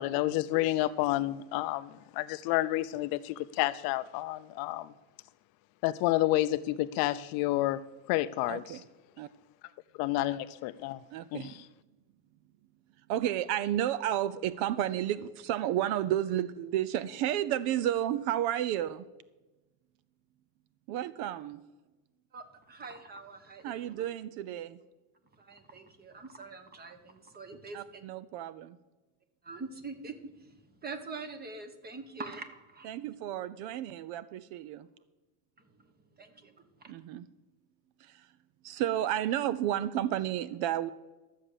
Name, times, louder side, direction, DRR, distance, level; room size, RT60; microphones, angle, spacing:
voice 1, 0.0-1.9 2.2-4.9 5.8-7.8 8.1-8.6 10.0-11.0 11.3-11.5, left 16 dB, 50° left, 14 dB, 0.5 m, -29 dB
voice 2, 8.5-8.9 9.2-9.3 11.1-11.7 13.1-19.1 20.9-21.6 23.6-24.8 27.7-28.8 32.8-34.9 36.9-37.3 38.0-38.3 38.6-40.9, right 12 dB, 60° right, 17 dB, 0.6 m, -32 dB
voice 3, 22.3-24.0 25.3-28.0 29.4-32.9 35.6-35.9 36.1-36.9, right 4 dB, 20° right, 9 dB, 1.4 m, -44 dB
12.5 x 7.5 x 6.8 m, 1.1 s
supercardioid pair, 135°, 45 cm